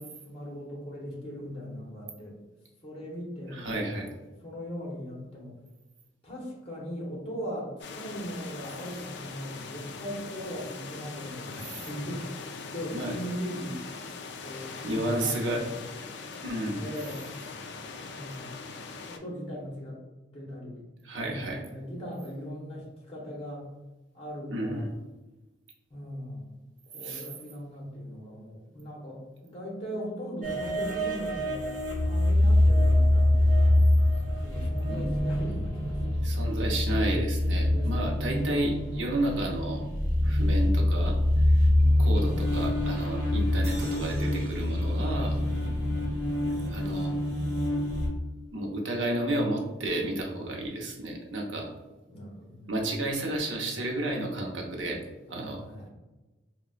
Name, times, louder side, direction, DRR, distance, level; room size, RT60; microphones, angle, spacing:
voice 1, 0.0-2.4 2.8-3.6 3.9-4.1 4.4-5.6 6.2-13.8 14.4-15.7 16.1-16.2 16.8-17.3 18.1-18.5 19.1-20.0 20.3-20.9 21.2-23.7 24.1-24.9 25.9-26.6 26.9-33.8 34.3-36.2 37.7-38.4 41.6-42.1 45.6-46.1 52.1-52.8 55.3-55.9, equal, 30° left, -3 dB, 0.8 m, -39 dB
voice 2, 3.5-4.1 11.7-11.8 12.9-13.1 14.8-15.6 16.4-16.8 21.0-21.6 24.5-24.9 27.0-27.2 34.8-35.1 36.0-39.8 40.2-41.2 41.5-41.6 42.0-45.4 46.7-47.2 48.5-51.7 52.7-55.0 55.3-55.6, right 1 dB, 85° right, 0 dB, 0.7 m, -31 dB
sound 1, 7.8-19.2, left 4 dB, 65° left, 0.3 m, -41 dB
sound 2, 30.4-48.1, left 1 dB, 45° right, 1.1 m, -25 dB
sound 3, 43.6-46.9, right 1 dB, 15° right, 0.7 m, -51 dB
3.9 x 2.1 x 2.4 m, 1.1 s
head